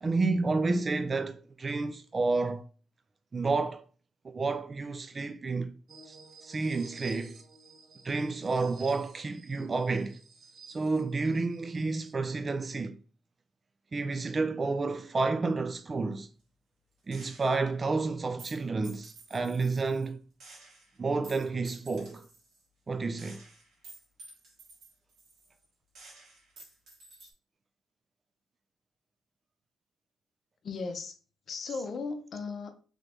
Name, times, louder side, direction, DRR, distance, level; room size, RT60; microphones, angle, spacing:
voice 1, 0.0-2.7 3.3-3.8 4.2-5.7 6.1-6.2 6.4-7.4 8.0-10.2 10.7-13.0 13.9-16.3 17.1-20.2 21.0-22.3 22.9-23.4, right 3 dB, 30° right, 0.3 m, -30 dB
sound 1, 5.9-12.1, right 4 dB, 50° right, 0.7 m, -53 dB
Gunshot gunfire, 17.1-17.7 18.4-20.1 20.4-22.6 23.2-25.7 25.9-27.3, right 3 dB, 75° right, 1.5 m, -52 dB
voice 2, 30.6-31.2 31.5-32.7, left 4 dB, 55° left, 0.6 m, -36 dB
3.1 x 2.5 x 3.3 m
cardioid pair, 90°, 0 cm